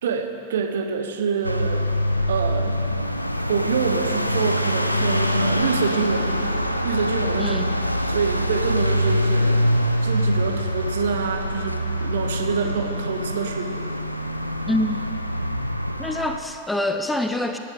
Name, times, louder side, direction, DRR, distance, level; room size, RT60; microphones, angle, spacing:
voice 1, 0.0-1.9 2.3-2.8 3.5-7.6 8.1-9.7 10.0-13.9, right 5 dB, 60° right, 7 dB, 1.0 m, -26 dB
sound 1, 1.4-16.4, equal, 90° left, 0.5 m, -24 dB
voice 2, 7.4-7.7 14.7-15.0 16.0-17.6, left 1 dB, 5° left, 6 dB, 0.7 m, -25 dB
17.5 x 8.9 x 4.9 m, 2.7 s
figure-of-eight pair, 90°, 0 cm